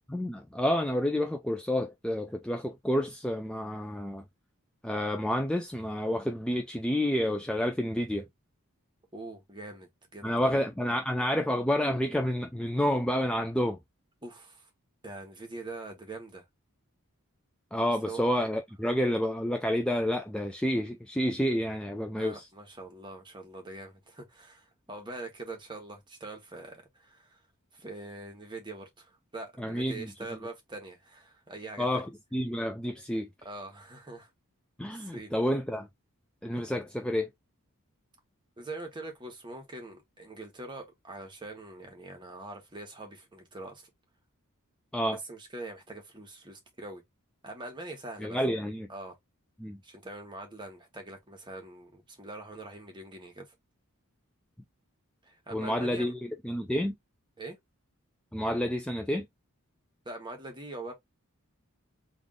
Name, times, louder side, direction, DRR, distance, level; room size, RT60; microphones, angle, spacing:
voice 1, 0.1-4.2 4.8-8.3 10.2-13.8 17.7-22.5 29.6-30.1 31.8-33.3 34.8-35.9 36.4-37.3 44.9-45.2 48.2-48.9 49.6-49.8 55.5-56.9 58.3-59.3, equal, 5° left, 0.3 m, -29 dB
voice 2, 9.1-10.6 14.2-14.7 15.0-16.4 18.0-18.2 22.1-27.4 27.7-32.0 33.4-34.3 34.9-35.3 38.6-43.9 45.1-47.0 47.4-48.4 48.9-49.1 49.8-53.5 55.2-56.1 57.4-57.6 60.0-60.9, right 2 dB, 20° right, 1.2 m, -43 dB
3.4 x 2.4 x 3.6 m
head